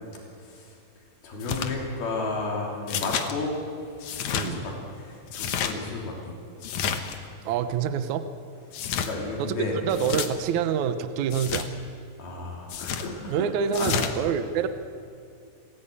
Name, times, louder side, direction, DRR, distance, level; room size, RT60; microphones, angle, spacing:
voice 1, 0.4-0.8 1.2-3.5 3.9-6.3 8.9-9.8 12.2-13.5 13.7-14.0, left 3 dB, 85° left, -1 dB, 5.2 m, -33 dB
sound 1, 1.4-1.7 2.9-3.3 4.0-4.5 5.3-5.7 6.6-7.2 8.7-9.1 9.9-10.3 11.3-11.7 12.7-13.1 13.7-14.1, left 8 dB, 60° left, 2.2 m, -30 dB
voice 2, 7.4-8.3 9.4-9.6 9.8-11.7 13.3-14.7, right 7 dB, 65° right, 10 dB, 2.0 m, -26 dB
27.5 x 16.0 x 8.6 m, 2.4 s
omnidirectional pair, 4.2 m